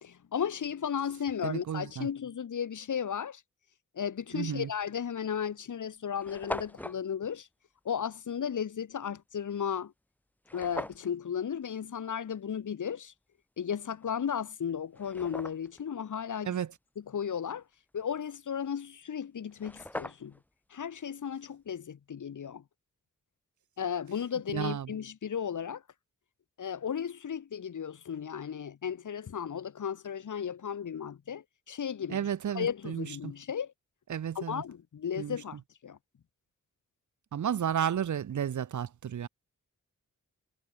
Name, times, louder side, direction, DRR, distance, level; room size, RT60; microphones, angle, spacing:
voice 1, 0.0-3.4 4.0-7.5 7.8-9.9 10.5-13.1 13.6-16.6 17.0-17.6 17.9-20.3 20.7-22.6 23.8-25.8 26.6-32.3 32.5-33.7 34.4-36.0, left 8 dB, 70° left, 2.1 m, -35 dB
voice 2, 1.4-2.1 4.3-4.7 16.5-16.7 24.5-24.9 32.1-33.3 34.1-34.6 35.2-35.4 37.3-39.3, right 9 dB, 70° right, 0.9 m, -32 dB
sound 1, 4.6-4.8 5.5-5.6 5.8-5.9 6.1-7.0 10.4-11.1 14.0-14.1 14.7-15.8 19.2-19.3 19.5-20.5, left 1 dB, 5° left, 0.8 m, -40 dB
wide cardioid pair, 135°, 31 cm